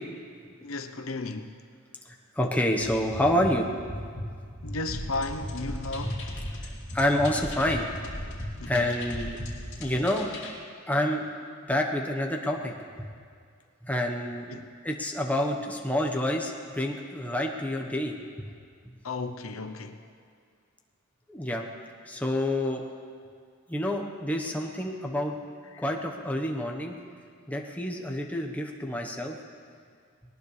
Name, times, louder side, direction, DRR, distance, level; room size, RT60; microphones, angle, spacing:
voice 1, 0.6-1.5 4.6-6.3 8.6-8.9 14.5-14.7 19.0-20.0 25.7-25.9, left 3 dB, 75° left, 0.9 m, -34 dB
voice 2, 2.4-3.7 6.1-6.2 6.6-7.9 8.7-9.3 9.8-10.3 10.9-11.2 11.7-12.7 13.8-14.4 14.8-18.1 21.3-21.7 22.1-22.8 23.7-25.4 25.8-26.9 27.5-29.4, left 1 dB, 5° left, 1.2 m, -28 dB
sound 1, 2.8-9.9, equal, 30° left, 2.1 m, -39 dB
sound 2, 4.9-10.5, left 1 dB, 60° left, 2.8 m, -40 dB
20.5 x 19.0 x 3.4 m
head